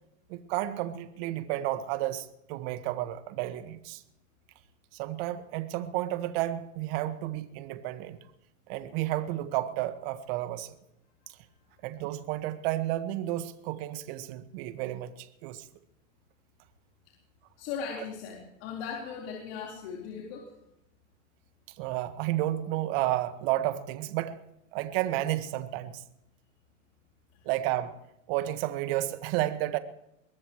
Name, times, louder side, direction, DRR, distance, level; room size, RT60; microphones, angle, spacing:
voice 1, 0.3-4.0 4.9-8.2 8.7-10.7 11.8-15.6 21.8-24.4 24.7-26.0 27.5-28.0 28.3-29.8, right 14 dB, 45° right, 10 dB, 1.7 m, -31 dB
voice 2, 11.3-11.7 17.6-20.5 27.3-27.4, left 6 dB, 50° left, -2 dB, 4.2 m, -39 dB
23.0 x 19.0 x 3.2 m, 0.81 s
hypercardioid pair, 135°, 40 cm